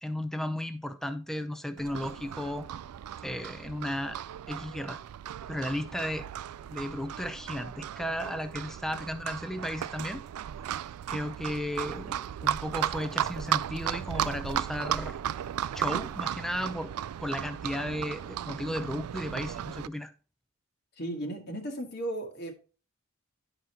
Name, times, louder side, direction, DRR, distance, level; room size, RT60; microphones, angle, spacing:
voice 1, 0.0-2.7 3.2-4.2 4.5-5.0 5.5-6.3 6.7-10.2 11.1-15.2 15.7-16.9 17.2-20.1, left 1 dB, ahead, 0.5 m, -34 dB
Livestock farm animals working animals, 1.8-19.9, right 10 dB, 85° right, 0.3 m, -35 dB
voice 2, 21.0-22.5, right 1 dB, 45° left, 1.4 m, -35 dB
11.0 x 5.0 x 2.9 m
head